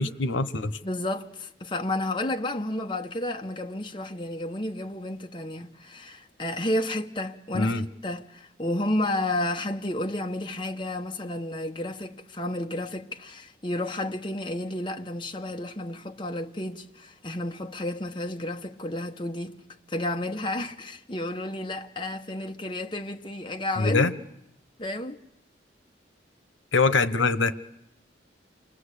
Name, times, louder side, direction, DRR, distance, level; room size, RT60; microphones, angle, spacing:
voice 1, 0.0-0.8 7.5-7.9 23.8-24.1 26.7-27.5, left 3 dB, 85° left, 1.0 m, -23 dB
voice 2, 0.8-19.5 19.9-24.1 24.8-25.2, left 1 dB, 25° left, 1.0 m, -31 dB
28.5 x 21.5 x 8.3 m
head